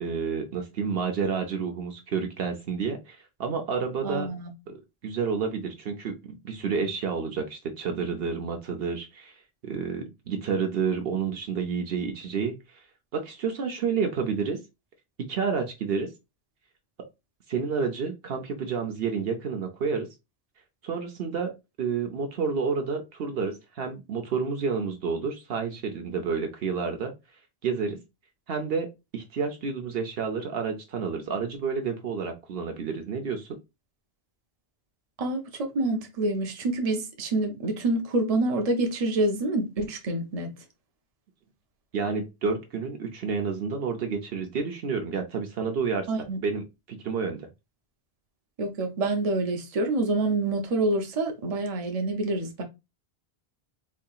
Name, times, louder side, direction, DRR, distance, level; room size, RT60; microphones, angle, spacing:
voice 1, 0.0-4.3 4.7-9.3 9.6-12.5 13.1-14.6 15.3-16.1 17.5-20.1 20.8-21.5 21.8-27.1 27.6-28.0 28.5-28.9 29.1-33.5 41.9-46.1 46.4-46.6 46.9-47.4, right 5 dB, 65° right, 0.9 m, -29 dB
voice 2, 4.0-4.5 35.2-40.5 46.1-46.4 48.6-52.6, right 2 dB, 40° right, 0.8 m, -27 dB
4.6 x 2.8 x 2.3 m
omnidirectional pair, 1.1 m